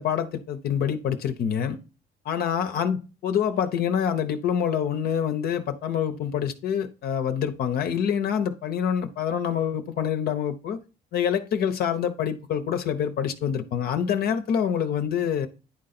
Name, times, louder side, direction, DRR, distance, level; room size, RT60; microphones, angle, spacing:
voice 1, 0.0-1.8 2.2-10.8 11.1-15.5, left 8 dB, 65° left, 0.9 m, -26 dB
10.0 x 3.9 x 4.2 m
cardioid pair, 110°, 17 cm